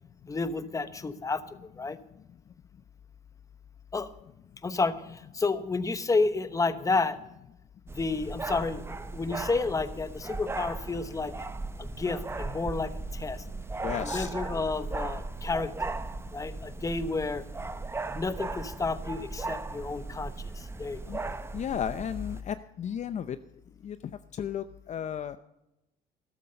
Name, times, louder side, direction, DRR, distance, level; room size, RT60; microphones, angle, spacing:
voice 1, 0.3-2.0 3.9-4.1 4.6-7.2 7.9-8.8 9.1-11.3 11.8-13.4 14.0-15.9 16.3-17.4 18.1-21.1, left 3 dB, 20° left, 12 dB, 1.0 m, -31 dB
sound 1, 7.9-22.4, right 3 dB, 15° right, 0.7 m, -37 dB
voice 2, 13.8-14.3 21.1-21.2 21.5-23.4 23.8-24.0 24.4-25.4, left 8 dB, 45° left, 11 dB, 0.6 m, -33 dB
13.5 x 12.0 x 5.3 m, 0.88 s
cardioid pair, 110°, 17 cm